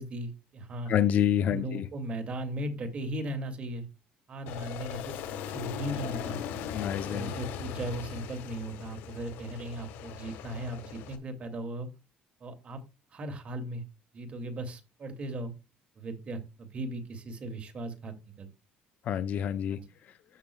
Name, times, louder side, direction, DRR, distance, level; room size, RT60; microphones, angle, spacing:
voice 1, 0.0-0.9 1.5-3.9 4.3-6.4 7.0-11.9 12.4-12.8 13.1-13.8 14.1-15.5 16.0-18.5 19.7-19.9, right 1 dB, 35° right, 2.3 m, -37 dB
voice 2, 0.9-1.8 6.7-7.3 19.1-19.8, left 10 dB, 50° left, 0.6 m, -27 dB
Aircraft, 4.5-11.2, left 8 dB, 85° left, 1.4 m, -39 dB
13.0 x 6.1 x 2.3 m
cardioid pair, 125°, 3 cm